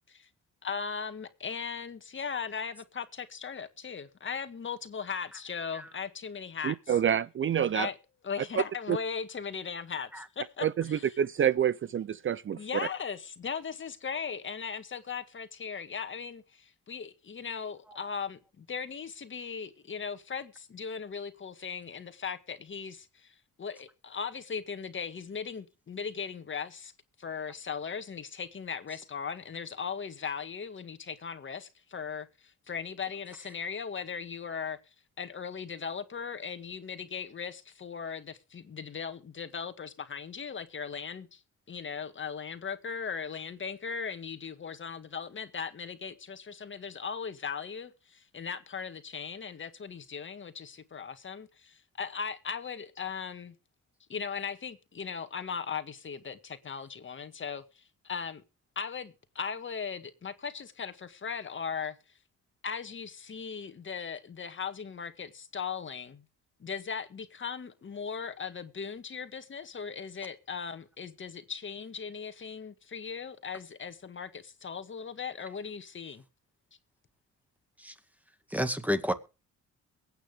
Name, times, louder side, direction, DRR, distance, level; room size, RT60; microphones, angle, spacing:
voice 1, 0.6-7.0 7.7-8.0 8.2-11.1 12.5-26.9 27.2-34.8 35.2-41.4 41.7-53.5 54.1-58.4 58.8-62.0 62.6-66.2 66.6-76.2, left 6 dB, 40° left, 1.9 m, -38 dB
voice 2, 6.6-7.9 8.9-9.0 10.6-12.6, right 9 dB, 40° right, 0.6 m, -27 dB
voice 3, 78.5-79.1, equal, 5° right, 2.0 m, -30 dB
22.5 x 9.2 x 3.6 m
cardioid pair, 90°, 30 cm